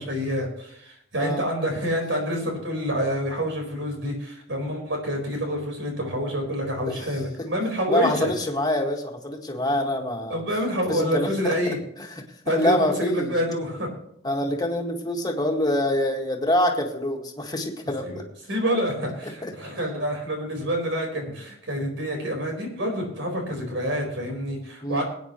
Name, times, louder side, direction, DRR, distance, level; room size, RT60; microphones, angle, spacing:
voice 1, 0.0-8.3 10.3-11.8 12.4-13.9 18.0-18.2 18.5-25.0, equal, 80° right, 2 dB, 4.5 m, -27 dB
voice 2, 7.9-10.4 10.9-11.8 12.1-13.3 14.2-18.2 19.2-19.5 24.8-25.0, left 1 dB, 20° left, 2 dB, 1.8 m, -26 dB
22.0 x 9.4 x 3.0 m, 0.73 s
head